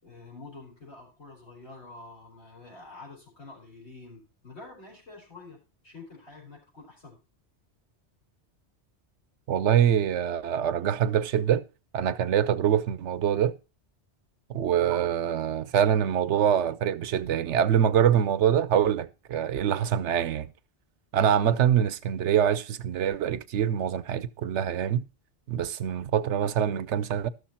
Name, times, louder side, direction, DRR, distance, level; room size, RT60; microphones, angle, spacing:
voice 1, 0.0-7.2, left 3 dB, 75° left, 5.3 m, -47 dB
voice 2, 9.5-11.6 11.9-13.6 14.5-20.5 21.1-25.0 25.5-27.3, right 9 dB, 85° right, 1.0 m, -24 dB
12.5 x 6.6 x 4.3 m
omnidirectional pair, 1.2 m